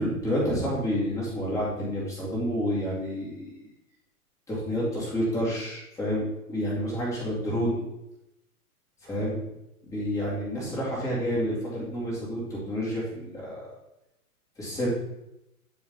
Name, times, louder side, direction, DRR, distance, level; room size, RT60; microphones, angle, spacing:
voice 1, 0.0-3.5 4.5-7.7 9.0-9.4 9.8-13.7 14.6-14.9, equal, 5° left, -6 dB, 2.2 m, -29 dB
8.9 x 4.7 x 3.8 m, 0.87 s
figure-of-eight pair, 115°, 46 cm